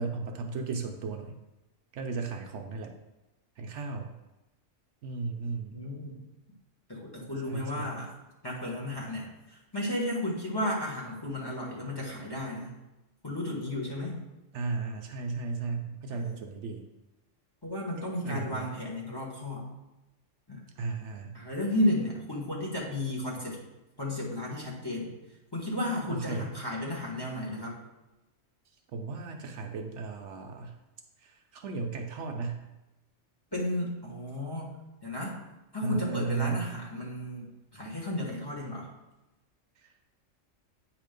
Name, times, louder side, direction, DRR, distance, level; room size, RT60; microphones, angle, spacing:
voice 1, 0.0-1.4 1.9-2.9 3.6-4.2 5.0-5.8 7.4-8.0 14.5-16.8 18.2-18.7 20.8-21.4 26.1-26.5 28.9-30.8 31.2-32.7 35.8-36.7 39.8-39.9, right 4 dB, 70° right, 4 dB, 0.9 m, -35 dB
voice 2, 5.7-6.2 6.9-8.1 8.4-12.7 13.2-14.2 16.1-16.4 17.6-19.6 20.5-20.6 21.3-23.6 24.0-25.1 25.5-27.7 33.5-34.7 35.0-35.3 35.7-38.9, left 1 dB, 20° left, -4 dB, 1.3 m, -33 dB
8.4 x 2.9 x 5.1 m, 0.99 s
omnidirectional pair, 1.3 m